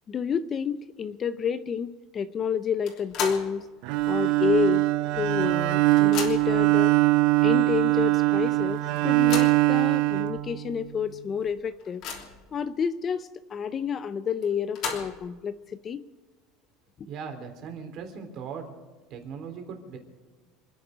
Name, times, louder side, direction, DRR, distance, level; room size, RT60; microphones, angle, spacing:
voice 1, 0.1-3.7 4.1-4.8 5.1-6.9 7.4-12.0 12.5-16.0, left 7 dB, 25° left, 13 dB, 0.5 m, -29 dB
sound 1, 2.9-3.6 4.0-4.1 5.1-5.2 5.5-6.6 7.4-7.5 7.9-8.0 9.0-9.7 10.4-10.5 10.9-11.0 11.4-12.5 14.4-15.3, left 6 dB, 50° left, 3.1 m, -35 dB
Bowed string instrument, 3.8-11.0, right 20 dB, 60° right, 0.6 m, -22 dB
voice 2, 17.0-18.7 19.1-20.0, right 6 dB, 40° right, 4 dB, 3.5 m, -38 dB
28.0 x 10.0 x 5.1 m, 1.3 s
cardioid pair, 155°, 0 cm